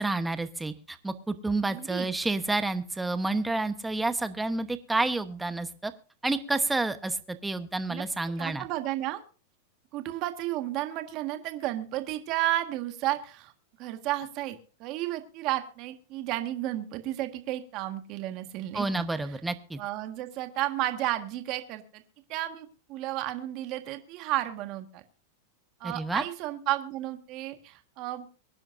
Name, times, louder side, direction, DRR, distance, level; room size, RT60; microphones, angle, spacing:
voice 1, 0.0-5.9 6.2-8.6 18.7-19.8 25.8-26.2, right 2 dB, 5° right, 11 dB, 1.0 m, -29 dB
voice 2, 1.7-2.1 7.9-8.0 8.4-9.2 9.9-13.5 13.8-19.1 19.8-22.0 22.3-25.0 25.8-28.3, right 15 dB, 40° right, 8 dB, 1.6 m, -32 dB
24.0 x 10.5 x 2.6 m, 0.38 s
supercardioid pair, 155°, 0 cm